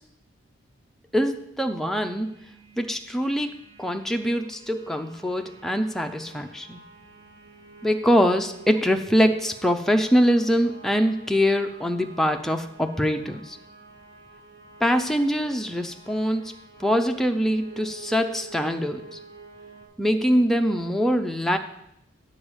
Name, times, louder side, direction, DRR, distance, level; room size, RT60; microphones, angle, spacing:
voice 1, 1.1-2.3 2.8-6.8 7.8-13.6 14.8-16.5 16.8-19.2 20.0-21.6, equal, ahead, 4 dB, 0.4 m, -23 dB
sound 1, 2.2-19.9, right 3 dB, 80° right, 2.2 m, -48 dB
8.5 x 4.7 x 7.1 m, 0.80 s
head